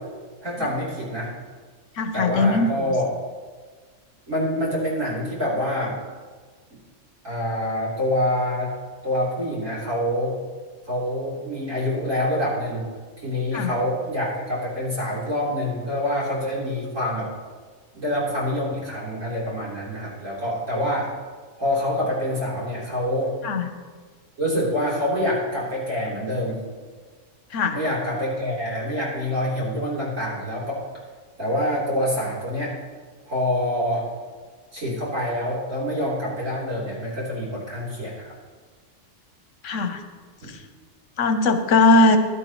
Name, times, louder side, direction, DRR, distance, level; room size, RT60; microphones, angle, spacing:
voice 1, 0.4-1.3 2.1-3.1 4.3-5.9 7.2-8.7 9.0-10.3 10.9-12.8 13.2-17.3 17.9-21.1 21.6-23.3 24.4-26.6 27.7-30.8 31.4-32.7 33.3-34.1 34.7-38.3 40.4-40.5, left 1 dB, 80° right, -7 dB, 4.0 m, -26 dB
voice 2, 2.0-2.9 13.5-13.7 23.4-23.7 27.5-27.8 39.6-40.0 41.2-42.2, left 3 dB, 75° left, 7 dB, 1.2 m, -19 dB
15.5 x 11.5 x 3.1 m, 1.5 s
omnidirectional pair, 1.3 m